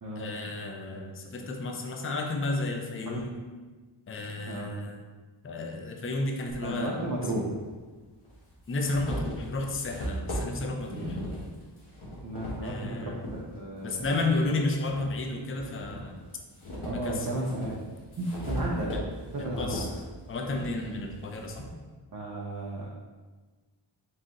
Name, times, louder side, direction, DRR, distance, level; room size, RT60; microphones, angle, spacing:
voice 1, 0.2-3.3 4.1-5.0 5.4-7.1 8.7-11.2 12.6-13.1 13.8-16.2 16.9-17.4 18.8-19.0 19.4-19.9 20.3-21.7, left 2 dB, 30° left, 3 dB, 0.4 m, -32 dB
voice 2, 4.5-4.8 6.6-7.6 10.9-11.1 12.2-14.1 14.4-14.5 15.8-15.9 16.8-17.8 18.2-18.9 19.3-19.8 22.1-22.9, right 1 dB, 45° right, -4 dB, 0.6 m, -34 dB
sound 1, 6.5-6.6 7.7-7.8 8.2-13.4 13.9-15.1 15.5-21.7, equal, 85° left, 1.2 m, -38 dB
4.0 x 2.7 x 3.7 m, 1.3 s
wide cardioid pair, 75°, 49 cm